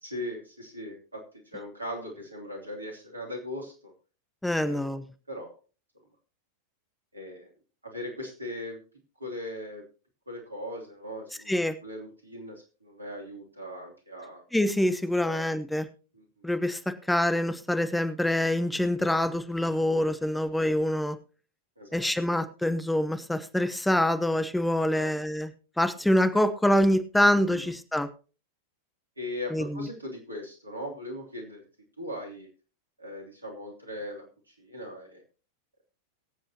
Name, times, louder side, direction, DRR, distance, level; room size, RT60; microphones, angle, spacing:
voice 1, 0.0-1.2 1.5-3.9 4.6-4.9 5.3-5.5 7.1-7.5 7.8-8.8 9.2-9.8 10.3-11.5 11.8-14.4 15.2-15.4 16.1-16.5 21.8-22.1 24.9-25.1 27.5-27.7 29.2-31.6 32.0-32.5 33.0-35.2, left 1 dB, 80° right, 2 dB, 2.9 m, -39 dB
voice 2, 4.4-5.0 11.5-11.7 14.5-15.9 16.4-16.8 17.1-21.2 21.9-25.5 25.8-28.1 29.5-29.8, left 1 dB, 5° left, 11 dB, 0.9 m, -25 dB
23.0 x 7.8 x 2.9 m, 0.36 s
figure-of-eight pair, 90°, 0 cm